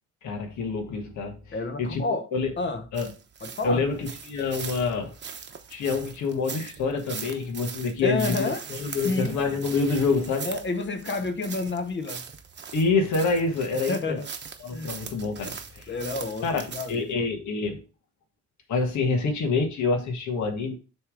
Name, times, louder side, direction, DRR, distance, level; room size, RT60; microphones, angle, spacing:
voice 1, 0.2-1.4 1.8-2.0 2.3-2.5 2.9-3.1 3.6-5.1 5.7-8.4 8.7-10.5 12.7-14.2 14.6-15.9 16.4-17.8 18.7-20.7, left 4 dB, 70° left, 1.6 m, -27 dB
voice 2, 1.5-2.3 2.6-2.8 3.4-3.8 8.0-8.7 9.0-9.4 10.4-12.2 13.9-14.3 14.7-14.9 15.9-17.3, left 3 dB, 40° left, 1.0 m, -30 dB
sound 1, 2.9-17.1, right 6 dB, 35° right, 0.9 m, -40 dB
6.9 x 3.5 x 4.9 m
cardioid pair, 90°, 30 cm